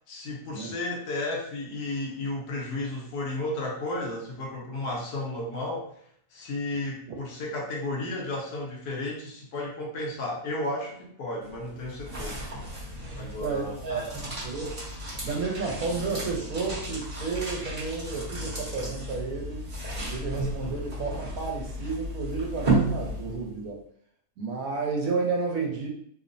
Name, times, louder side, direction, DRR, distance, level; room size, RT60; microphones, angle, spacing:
voice 1, 0.1-5.9 6.3-12.4 13.2-14.1 20.6-20.7, left 2 dB, 75° left, 0 dB, 1.1 m, -33 dB
sound 1, 11.4-23.6, right 1 dB, 35° right, 0.7 m, -33 dB
voice 2, 13.4-14.7 15.2-19.6 20.1-23.8 24.4-25.9, right 4 dB, 70° right, 0 dB, 1.0 m, -31 dB
2.9 x 2.0 x 2.5 m, 0.66 s
omnidirectional pair, 1.6 m